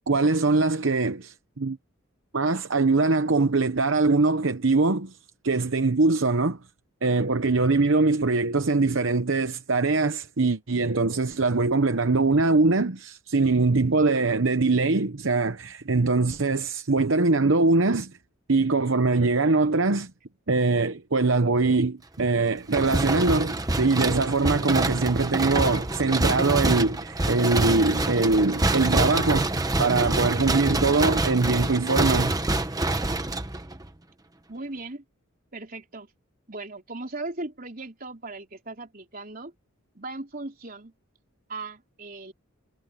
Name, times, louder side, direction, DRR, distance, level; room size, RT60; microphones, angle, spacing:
voice 1, 0.1-1.8 2.3-5.1 5.4-6.6 7.0-18.1 18.5-20.1 20.5-29.5 29.8-32.4, right 3 dB, 60° right, 0.9 m, -22 dB
sound 1, 22.7-33.9, right 2 dB, 15° right, 1.1 m, -26 dB
voice 2, 34.5-35.0 35.5-36.1 36.5-39.5 39.9-40.9 41.5-42.3, right 2 dB, 40° right, 4.0 m, -37 dB
head